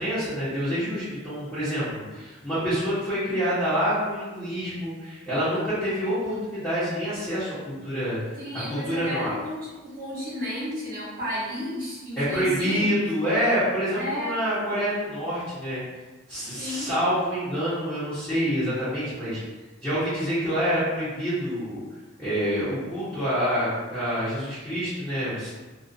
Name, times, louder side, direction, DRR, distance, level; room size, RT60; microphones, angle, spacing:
voice 1, 0.0-8.2 8.7-9.3 12.2-15.8 16.3-19.4 19.8-21.8 22.2-25.5, equal, 5° left, -17 dB, 0.9 m, -27 dB
voice 2, 8.4-12.9 14.0-14.4 16.5-16.9, left 1 dB, 45° right, -9 dB, 1.0 m, -32 dB
2.6 x 2.4 x 2.4 m, 1.2 s
head